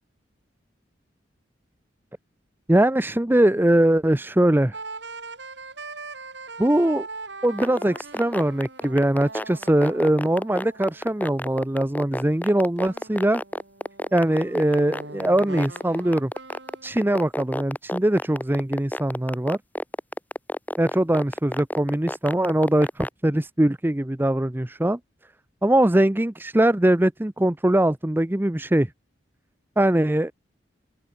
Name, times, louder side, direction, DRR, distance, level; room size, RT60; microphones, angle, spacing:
voice 1, 2.7-4.8 6.6-7.1 7.4-13.4 14.1-16.3 16.8-19.6 20.8-25.0 25.6-28.9 29.8-30.3, right 1 dB, 10° right, 0.6 m, -21 dB
sound 1, 4.7-12.1 12.8-17.3, right 3 dB, 70° right, 8.0 m, -41 dB
sound 2, 7.4-23.1, left 1 dB, 10° left, 5.7 m, -29 dB
open air
head